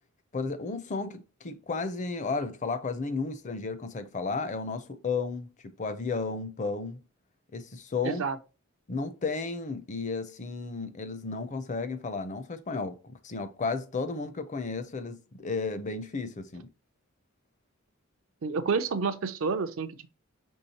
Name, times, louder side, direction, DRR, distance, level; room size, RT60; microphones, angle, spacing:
voice 1, 0.3-7.0 7.5-8.2 8.9-16.7, left 4 dB, 35° left, 0.5 m, -33 dB
voice 2, 8.0-8.4 18.4-20.1, right 5 dB, 70° right, 0.5 m, -29 dB
5.4 x 3.2 x 2.8 m
head